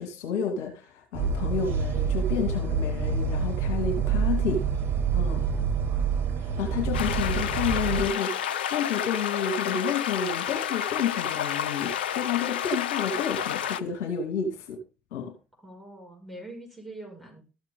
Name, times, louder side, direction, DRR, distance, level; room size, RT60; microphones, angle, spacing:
voice 1, 0.0-4.6 5.1-5.4 6.4-14.8 15.1-15.3, left 6 dB, 60° left, 1 dB, 2.0 m, -30 dB
sound 1, 1.1-8.1, right 6 dB, 45° right, 2.3 m, -27 dB
voice 2, 5.3-5.8 13.5-13.7 15.6-17.4, right 1 dB, ahead, -1 dB, 5.9 m, -44 dB
sound 2, 6.9-13.8, left 9 dB, 75° left, 0.4 m, -30 dB
13.5 x 7.3 x 3.8 m, 0.33 s
figure-of-eight pair, 55°, 5 cm